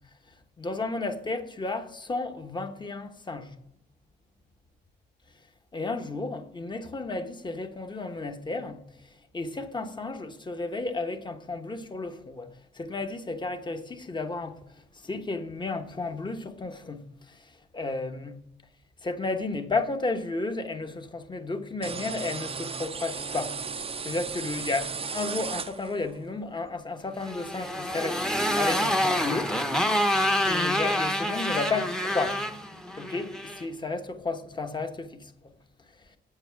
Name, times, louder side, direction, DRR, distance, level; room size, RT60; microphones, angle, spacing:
voice 1, 0.6-3.5 5.7-8.8 9.3-12.5 12.7-14.6 15.0-17.4 17.7-18.4 19.0-23.6 24.0-28.2 28.6-29.6 29.9-30.0 30.5-32.4 33.0-35.3, left 3 dB, 25° left, 1.1 m, -32 dB
sound 1, 21.8-26.2, right 5 dB, 30° right, 0.6 m, -35 dB
Motorcycle, 27.2-33.6, equal, 5° left, 0.9 m, -27 dB
8.4 x 7.9 x 5.8 m
cardioid pair, 90°, 20 cm